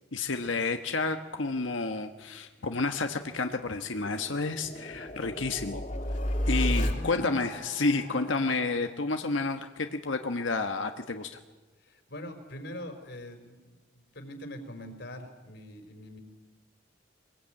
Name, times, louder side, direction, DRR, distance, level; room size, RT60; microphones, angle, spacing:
voice 1, 0.1-5.8 6.5-11.3, left 3 dB, 80° left, 6 dB, 1.3 m, -30 dB
sound 1, 3.1-9.7, equal, 40° left, 2.9 m, -34 dB
voice 2, 6.7-7.4 11.8-16.2, left 1 dB, 60° left, 6 dB, 4.3 m, -43 dB
24.0 x 21.5 x 8.9 m, 1.2 s
head